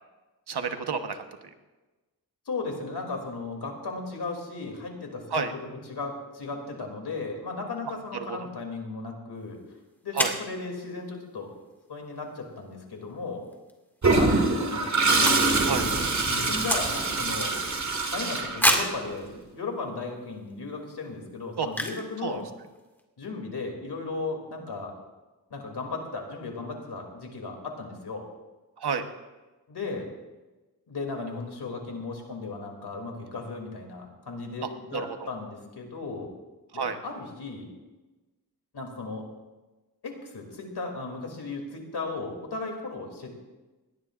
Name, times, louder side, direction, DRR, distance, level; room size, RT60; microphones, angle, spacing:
voice 1, 0.5-1.2 5.3-5.5 8.1-8.4 10.1-10.3 15.6-15.8 21.6-21.7 22.2-22.4 28.8-29.1 34.6-35.3 36.7-37.0, right 5 dB, 85° right, 7 dB, 1.2 m, -30 dB
voice 2, 2.5-9.6 10.0-11.5 11.9-13.5 14.1-15.5 16.3-17.5 18.1-22.5 23.2-24.9 25.5-28.2 29.7-30.1 30.9-36.3 36.7-37.7 38.7-39.2 40.0-43.4, left 3 dB, 90° left, 2 dB, 2.9 m, -36 dB
sound 1, 9.5-9.6 10.1-10.5 13.4-13.7 14.0-14.1 14.3-15.8 16.0-17.3 17.7-17.8 18.6-19.0 19.7-19.8 20.3-20.5 21.7-22.1 22.4-22.5 22.7-23.0, equal, 5° left, 2.1 m, -28 dB
Toilet flush, 14.0-19.1, right 3 dB, 50° right, 2.1 m, -24 dB
20.5 x 17.5 x 2.5 m, 1.2 s
wide cardioid pair, 70°, 38 cm